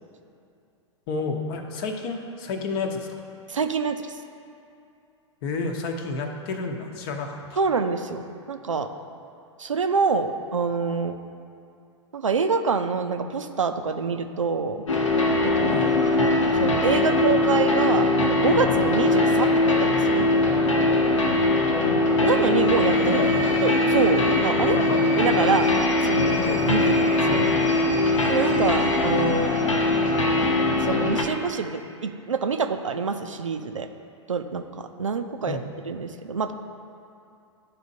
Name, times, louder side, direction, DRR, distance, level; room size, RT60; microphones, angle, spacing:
voice 1, 1.1-3.1 5.4-7.6 15.7-15.9 21.7-22.0 23.0-23.4 24.7-25.0 27.3-27.5 35.5-35.7, left 3 dB, 45° left, 4 dB, 0.8 m, -30 dB
voice 2, 3.5-4.2 7.6-8.9 9.6-11.2 12.1-14.8 15.4-15.9 16.6-20.3 22.2-23.2 23.6-24.8 25.2-25.7 26.0-27.4 28.3-29.5 30.8-33.9 34.3-35.6 35.9-36.5, right 5 dB, 85° right, 7 dB, 0.5 m, -26 dB
sound 1, 14.9-31.2, left 2 dB, 80° left, 0.8 m, -21 dB
11.5 x 4.2 x 2.7 m, 2.6 s
figure-of-eight pair, 105°, 16 cm